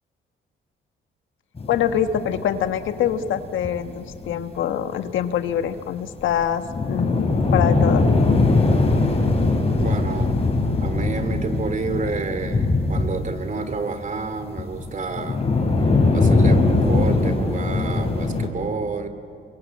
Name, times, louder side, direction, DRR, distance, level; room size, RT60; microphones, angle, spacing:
sound 1, 1.6-4.5 4.9-5.0 5.2-5.3 5.6-5.7 6.1-13.8 14.1-18.5, left 3 dB, 30° left, 5.3 m, -21 dB
voice 1, 1.7-8.1, left 9 dB, 75° left, 9 dB, 1.3 m, -24 dB
voice 2, 9.8-10.4 10.8-15.4 15.8-16.6 16.9-19.1, right 4 dB, 40° right, 9 dB, 2.6 m, -29 dB
28.0 x 22.5 x 8.5 m, 2.4 s
cardioid pair, 90°, 20 cm